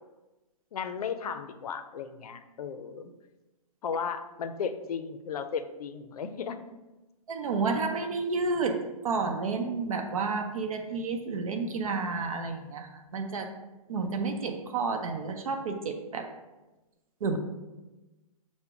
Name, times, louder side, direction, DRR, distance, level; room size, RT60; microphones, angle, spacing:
voice 1, 0.7-3.1 3.8-6.6, left 6 dB, 80° left, 10 dB, 0.5 m, -35 dB
voice 2, 7.3-8.8 9.0-13.5 13.9-16.3 17.2-17.4, right 4 dB, 65° right, 5 dB, 0.6 m, -30 dB
5.7 x 2.1 x 3.6 m, 1.1 s
hypercardioid pair, 170°, 19 cm